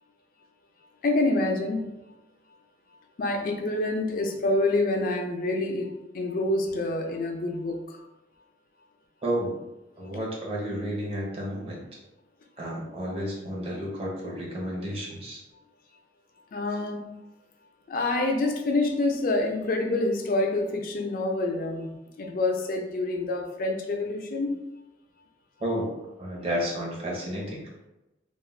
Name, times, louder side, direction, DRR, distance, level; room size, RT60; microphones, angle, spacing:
voice 1, 1.0-2.0 3.2-8.0 16.5-17.2 17.9-21.9 22.2-24.6, left 2 dB, 50° left, 3 dB, 0.4 m, -27 dB
voice 2, 9.2-9.6 10.0-12.0 12.6-15.4 25.6-27.6, equal, 35° right, -3 dB, 0.7 m, -31 dB
2.4 x 2.1 x 3.1 m, 0.96 s
head